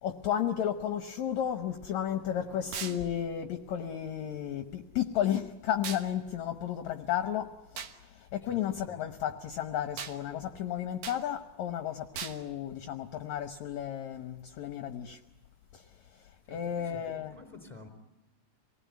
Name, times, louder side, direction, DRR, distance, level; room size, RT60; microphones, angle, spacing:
voice 1, 0.0-7.5 8.1-15.2 15.7-15.8 16.5-17.3, left 10 dB, 65° left, 7 dB, 2.0 m, -33 dB
sound 1, 2.7-3.0 5.8-6.1 7.8-8.0 10.0-10.2 11.0-11.2 12.1-12.4, right 7 dB, 65° right, 2.6 m, -38 dB
voice 2, 8.4-9.0 16.4-17.9, left 3 dB, 5° left, 5 dB, 3.8 m, -51 dB
27.0 x 19.5 x 9.3 m, 1.1 s
omnidirectional pair, 4.0 m